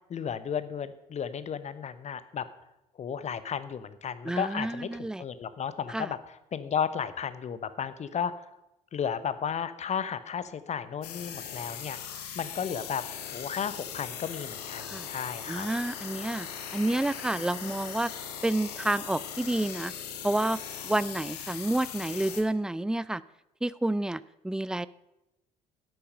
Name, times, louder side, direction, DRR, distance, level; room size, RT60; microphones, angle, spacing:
voice 1, 0.1-2.5 3.0-8.4 8.9-13.0 13.3-15.7, left 7 dB, 35° left, 14 dB, 0.9 m, -34 dB
voice 2, 4.2-5.2 5.9-6.1 14.8-15.1 15.5-16.5 16.7-18.1 18.4-19.9 20.2-20.6 20.8-23.2 23.6-24.9, right 1 dB, 5° right, 18 dB, 0.4 m, -29 dB
sound 1, 11.0-22.4, left 8 dB, 70° left, 1.2 m, -39 dB
12.5 x 8.6 x 5.5 m, 0.92 s
figure-of-eight pair, 50°, 21 cm